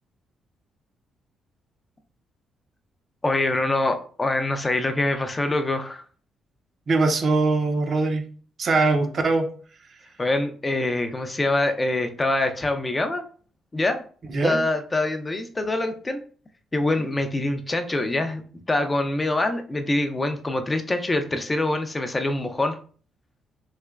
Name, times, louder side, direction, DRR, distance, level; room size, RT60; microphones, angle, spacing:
voice 1, 3.2-6.0 10.2-13.2 13.7-14.0 14.4-16.2 16.7-18.4 18.7-22.8, left 2 dB, 20° left, 6 dB, 0.4 m, -24 dB
voice 2, 6.9-8.3 8.6-9.5 14.3-14.6, right 3 dB, 50° right, 5 dB, 0.6 m, -21 dB
3.2 x 2.9 x 2.3 m, 0.43 s
cardioid pair, 90°, 0 cm